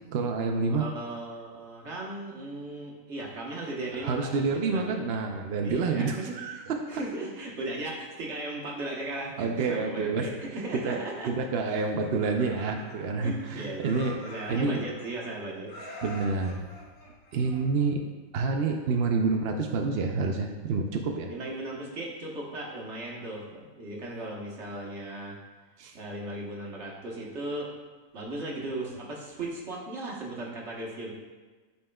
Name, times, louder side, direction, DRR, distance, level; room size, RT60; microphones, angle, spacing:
voice 1, 0.1-0.9 4.0-7.0 9.4-10.3 10.8-11.0 11.3-14.2 14.5-14.8 16.0-16.7 17.3-18.0 18.3-21.3 25.8-26.0, right 4 dB, 65° right, 3 dB, 0.6 m, -28 dB
voice 2, 0.7-5.1 5.6-11.3 11.6-11.8 13.2-13.9 14.2-15.9 21.3-25.4 25.9-27.7 28.1-31.1, right 2 dB, 50° right, -3 dB, 1.4 m, -37 dB
Laughter, 11.8-13.5 13.8-15.3 15.7-17.9, left 1 dB, 75° left, 1.8 m, -46 dB
11.0 x 4.2 x 2.3 m, 1.4 s
omnidirectional pair, 1.5 m